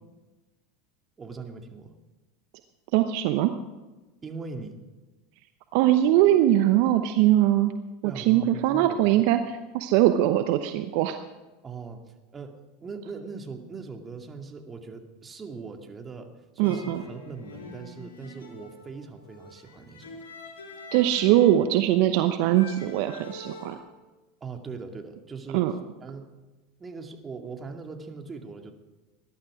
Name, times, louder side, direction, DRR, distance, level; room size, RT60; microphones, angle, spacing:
voice 1, 1.2-1.9 4.2-4.8 8.0-9.1 11.6-12.0 12.3-20.1 24.4-25.7 26.0-26.3 26.8-28.7, right 4 dB, 25° right, 3 dB, 2.2 m, -40 dB
voice 2, 2.9-3.5 5.7-7.7 8.0-11.2 16.6-17.0 20.9-23.8 25.5-25.7, right 13 dB, 60° right, 8 dB, 0.9 m, -21 dB
sound 1, 16.6-23.8, left 3 dB, 80° left, 3.5 m, -45 dB
20.5 x 11.5 x 5.0 m, 1.1 s
hypercardioid pair, 85°, 0 cm